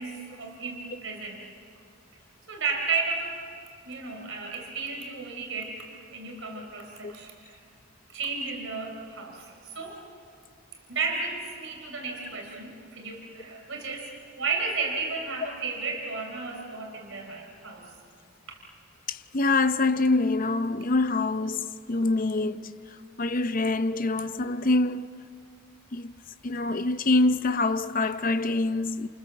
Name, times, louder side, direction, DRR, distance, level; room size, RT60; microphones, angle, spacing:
voice 1, 0.0-1.4 2.5-3.4 3.8-7.6 8.1-10.0 10.9-17.9 18.5-18.6, right 4 dB, 65° right, 4.1 m, -33 dB
voice 2, 19.1-25.2 25.9-26.1 26.4-29.1, left 2 dB, 40° left, 0.7 m, -25 dB
29.0 x 28.0 x 7.2 m
head